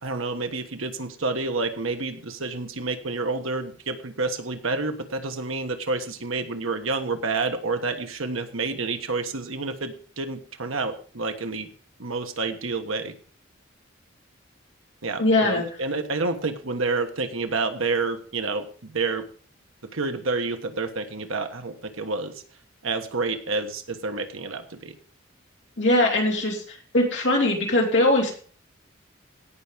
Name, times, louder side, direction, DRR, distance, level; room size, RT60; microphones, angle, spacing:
voice 1, 0.0-11.7 12.0-13.1 15.0-19.3 19.9-22.3 22.8-25.0, right 3 dB, 80° right, 7 dB, 1.4 m, -29 dB
voice 2, 15.2-15.6 25.8-28.3, left 1 dB, 55° left, -1 dB, 3.3 m, -21 dB
17.0 x 5.9 x 5.1 m, 0.44 s
head